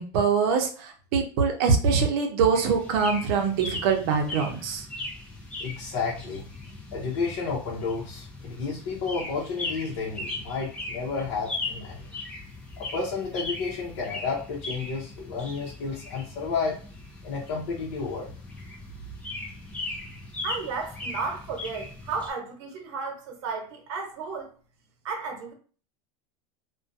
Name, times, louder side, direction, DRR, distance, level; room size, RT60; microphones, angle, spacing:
voice 1, 0.0-4.9, right 5 dB, 55° right, 0.6 m, -24 dB
sound 1, 2.5-22.3, left 2 dB, 10° left, 0.4 m, -38 dB
voice 2, 5.6-6.4 6.9-12.1 12.8-16.8 17.2-18.3, left 4 dB, 65° left, 0.8 m, -31 dB
voice 3, 20.4-24.5 25.0-25.5, right 4 dB, 90° right, 0.9 m, -33 dB
2.4 x 2.2 x 2.6 m
supercardioid pair, 170°, 15 cm